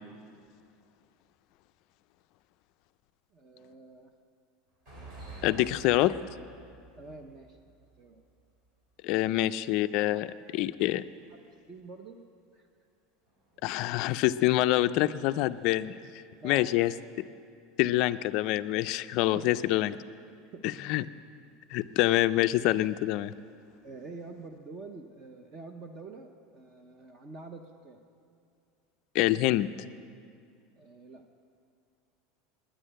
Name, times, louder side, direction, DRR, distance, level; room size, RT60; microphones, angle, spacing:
voice 1, 3.3-4.1 5.5-5.7 7.0-7.6 8.0-8.2 9.2-9.3 10.1-10.2 11.7-12.2 12.5-12.7 16.4-16.9 19.3-19.5 20.4-20.7 23.8-28.0 30.8-31.2, right 3 dB, 25° right, 5 dB, 0.5 m, -46 dB
sound 1, 4.7-9.3 9.6-9.7 10.9-11.1 13.2-14.5 15.5-15.7 16.2-16.3 16.7-16.8 18.7-18.8 19.4-19.5 21.9-22.2 22.7-23.0 23.5-24.1, right 3 dB, 40° right, 3.5 m, -50 dB
voice 2, 5.4-6.2 9.0-11.0 13.6-15.9 16.4-16.9 17.8-20.0 20.8-21.0 21.7-23.3 29.1-29.7, left 16 dB, 45° left, 13 dB, 0.3 m, -26 dB
10.0 x 9.9 x 8.7 m, 2.4 s
supercardioid pair, 175°, 0 cm